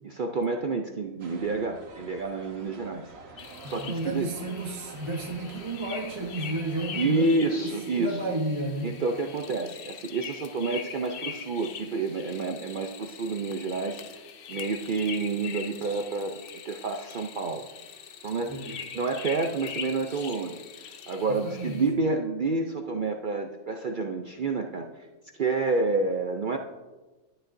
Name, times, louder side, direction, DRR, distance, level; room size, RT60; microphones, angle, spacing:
voice 1, 0.0-4.3 6.9-8.2 8.8-14.2 14.5-17.7 18.2-20.6 21.1-25.1 25.4-26.6, right 3 dB, 70° right, 4 dB, 0.4 m, -29 dB
sound 1, 1.2-7.4, right 3 dB, 50° right, 1.2 m, -48 dB
sound 2, 3.4-21.9, left 7 dB, 60° left, 0.6 m, -42 dB
voice 2, 3.6-8.9 18.5-18.8 21.3-21.8, right 2 dB, 25° right, 1 dB, 0.7 m, -32 dB
12.0 x 9.9 x 2.6 m, 1.2 s
omnidirectional pair, 1.5 m